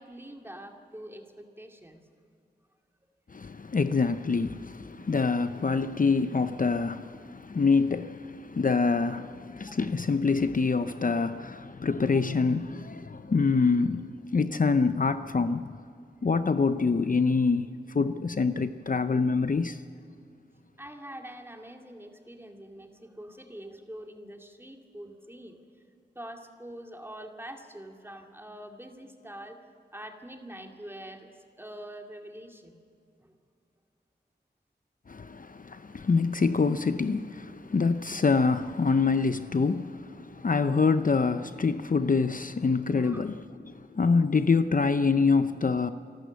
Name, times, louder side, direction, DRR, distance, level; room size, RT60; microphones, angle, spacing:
voice 1, 0.0-2.0 9.7-9.9 20.8-25.6 26.1-29.6 29.9-31.3 31.6-32.8 33.2-33.3 42.9-43.2, right 1 dB, 15° right, 2.3 m, -44 dB
voice 2, 3.3-15.7 16.2-17.7 17.9-19.8 35.1-43.4 43.6-45.9, left 4 dB, 50° left, 0.6 m, -26 dB
27.0 x 13.0 x 8.2 m
wide cardioid pair, 65°, 18 cm